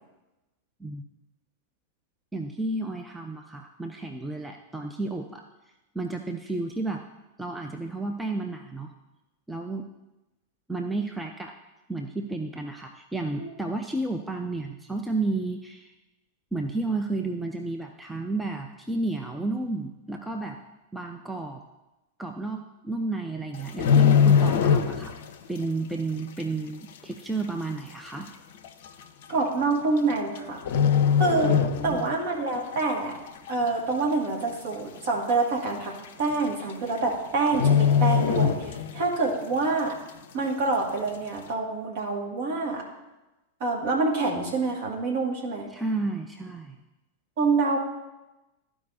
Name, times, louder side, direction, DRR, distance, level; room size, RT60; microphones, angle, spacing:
voice 1, 2.3-5.4 5.9-7.0 7.4-8.9 9.5-9.9 10.7-11.6 11.9-15.9 16.5-20.6 20.9-21.6 22.2-25.2 25.5-28.3 31.5-32.1 45.7-46.8, right 2 dB, 5° right, 3 dB, 0.5 m, -32 dB
sound 1, 23.5-25.3 25.6-25.8 26.4-26.5 27.4-27.5 27.7-27.8 28.6-28.9 30.0-30.4 30.6-32.2 32.6-32.8 33.3-33.8 34.1-34.2 34.5-34.6 35.0-35.1 36.0-36.1 36.4-36.7 37.0-37.1 37.5-39.1 39.5-39.6, left 7 dB, 55° left, 0.5 m, -22 dB
voice 2, 29.3-30.6 31.2-31.5 31.8-33.2 33.5-35.9 36.2-40.0 40.3-42.8 43.6-45.7 47.4-47.8, right 3 dB, 50° right, -1 dB, 1.9 m, -26 dB
13.5 x 4.9 x 2.6 m, 1.0 s
figure-of-eight pair, 90°, 0 cm